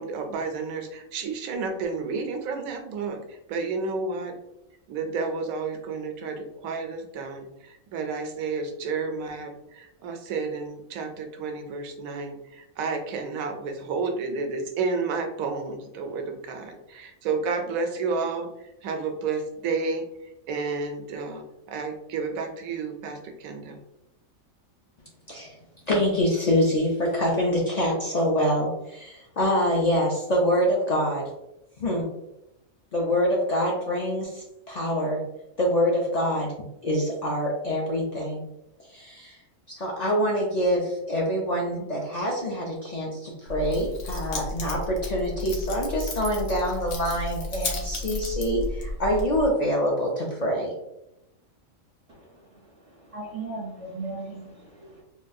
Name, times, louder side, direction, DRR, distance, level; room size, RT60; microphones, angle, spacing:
voice 1, 0.0-4.4 4.9-23.8, right 4 dB, 90° right, 5 dB, 1.0 m, -31 dB
voice 2, 25.9-31.3 31.8-32.1 32.9-35.2 35.6-36.5 36.8-38.4 38.9-39.4 39.7-50.7, equal, 65° left, -2 dB, 0.4 m, -25 dB
Keys jangling, 43.5-49.5, left 2 dB, 80° left, 1.1 m, -33 dB
voice 3, 53.1-55.0, right 3 dB, 55° right, -3 dB, 0.4 m, -36 dB
3.6 x 2.3 x 2.6 m, 0.87 s
omnidirectional pair, 1.4 m